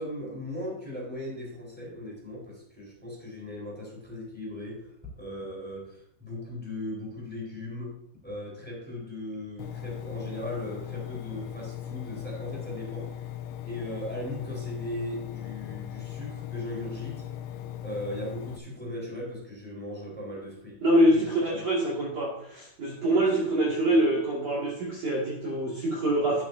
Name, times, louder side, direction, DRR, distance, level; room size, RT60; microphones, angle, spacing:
voice 1, 0.0-8.0 8.2-13.3 13.6-17.2 17.8-20.8 21.1-21.6, left 1 dB, ahead, -4 dB, 3.6 m, -38 dB
Engine, 9.6-18.6, left 11 dB, 80° left, 2.4 m, -39 dB
voice 2, 20.8-26.4, right 1 dB, 45° right, -6 dB, 2.8 m, -25 dB
11.5 x 10.5 x 2.8 m, 0.72 s
omnidirectional pair, 5.2 m